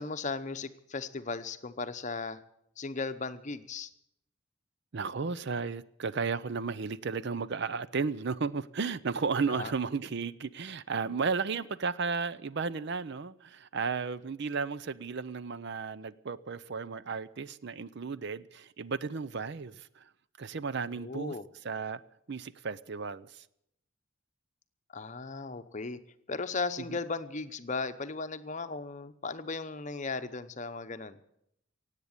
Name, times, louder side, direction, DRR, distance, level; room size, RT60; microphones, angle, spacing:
voice 1, 0.0-2.4 2.8-3.9 9.5-9.7 20.9-21.4 24.9-26.0 26.3-31.2, left 4 dB, 35° left, 0.8 m, -36 dB
voice 2, 4.9-20.1 20.4-21.3 21.6-22.0 22.3-23.5, right 5 dB, 55° right, 0.5 m, -34 dB
17.5 x 8.2 x 9.6 m
head